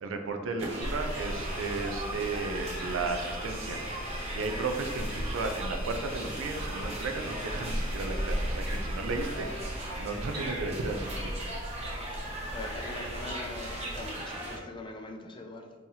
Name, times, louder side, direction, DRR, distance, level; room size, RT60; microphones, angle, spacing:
voice 1, 0.0-4.0 4.3-11.4, right 3 dB, 80° right, 6 dB, 0.4 m, -34 dB
sound 1, 0.6-14.6, right 1 dB, 35° right, 0.9 m, -38 dB
sound 2, 0.8-14.1, equal, 55° right, 1.3 m, -38 dB
sound 3, 1.1-10.5, equal, 85° left, 0.6 m, -48 dB
voice 2, 12.4-15.7, left 2 dB, 25° left, 3 dB, 0.4 m, -42 dB
2.9 x 2.7 x 3.8 m, 1.3 s
head